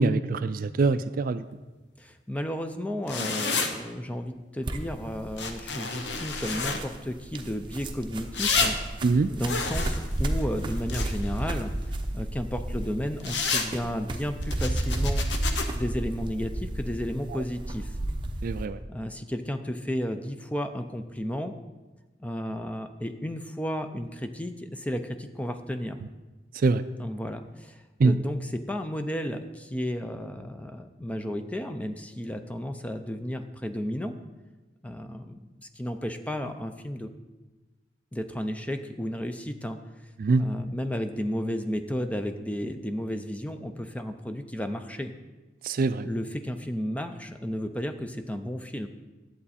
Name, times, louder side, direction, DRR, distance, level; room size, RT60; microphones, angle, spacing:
voice 1, 0.0-1.4 9.0-9.3 18.4-18.8 26.6-26.8 28.0-28.2 40.2-40.4 45.6-46.1, right 3 dB, 55° right, 13 dB, 0.4 m, -23 dB
voice 2, 2.0-8.8 9.3-11.7 12.1-15.2 15.6-17.9 18.9-21.5 22.2-26.0 27.0-34.1 34.8-37.1 38.1-39.8 40.4-45.1 46.0-48.9, equal, 10° left, 7 dB, 0.5 m, -33 dB
sound 1, 3.1-3.7 5.4-6.8 8.3-8.7 9.4-11.4 13.2-13.7 14.4-15.6, left 4 dB, 85° left, 0.9 m, -29 dB
sound 2, 4.6-18.7, right 1 dB, 30° right, 0.7 m, -32 dB
11.0 x 7.7 x 4.2 m, 1.2 s
head